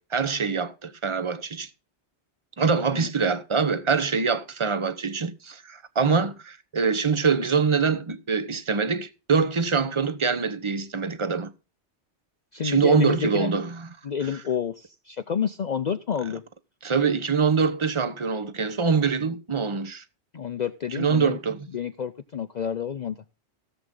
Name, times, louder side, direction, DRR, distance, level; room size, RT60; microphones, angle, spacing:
voice 1, 0.0-1.7 2.6-11.5 12.6-13.8 16.8-20.0 20.9-21.7, right 5 dB, 30° right, 1.0 m, -24 dB
voice 2, 12.5-13.5 14.0-16.4 20.3-21.4 21.7-23.2, left 7 dB, 45° left, 0.7 m, -29 dB
17.0 x 7.7 x 3.8 m
omnidirectional pair, 1.1 m